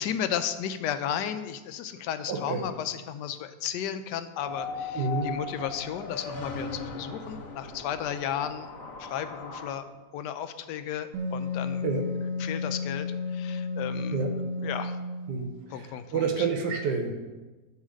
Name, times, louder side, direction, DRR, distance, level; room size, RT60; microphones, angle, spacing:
voice 1, 0.0-8.7 9.0-9.8 10.1-11.8 12.4-14.3 14.6-15.0 15.7-16.5, left 9 dB, 85° left, 11 dB, 1.2 m, -34 dB
voice 2, 2.3-2.6 5.0-5.3 11.8-12.0 14.1-14.3 15.3-17.1, right 5 dB, 90° right, 4 dB, 1.4 m, -29 dB
sound 1, 4.4-9.7, left 4 dB, 60° left, 1.3 m, -38 dB
Wind instrument woodwind instrument, 11.1-15.6, left 3 dB, 60° right, 1.2 m, -32 dB
9.5 x 3.2 x 6.3 m, 1.2 s
omnidirectional pair, 1.8 m